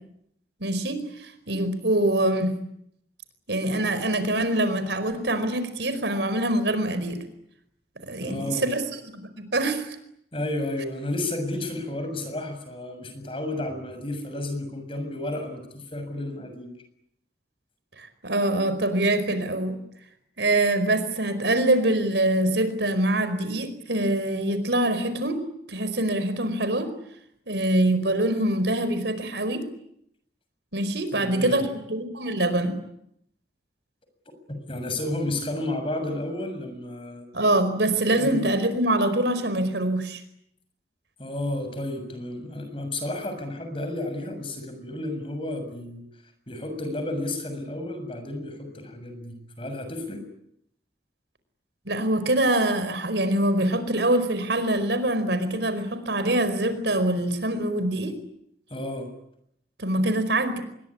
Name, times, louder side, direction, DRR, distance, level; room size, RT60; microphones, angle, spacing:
voice 1, 0.6-2.5 3.5-7.2 8.0-9.9 18.0-19.8 20.4-25.4 25.7-26.9 27.5-29.7 30.7-32.7 37.3-40.2 51.9-58.2 59.8-60.6, right 1 dB, 85° right, 11 dB, 4.9 m, -24 dB
voice 2, 8.2-8.7 10.3-16.7 31.1-31.6 34.7-37.3 37.9-38.5 41.2-46.0 46.5-50.2 58.7-59.1, left 1 dB, 30° left, 8 dB, 6.8 m, -32 dB
26.5 x 22.5 x 9.9 m, 0.76 s
head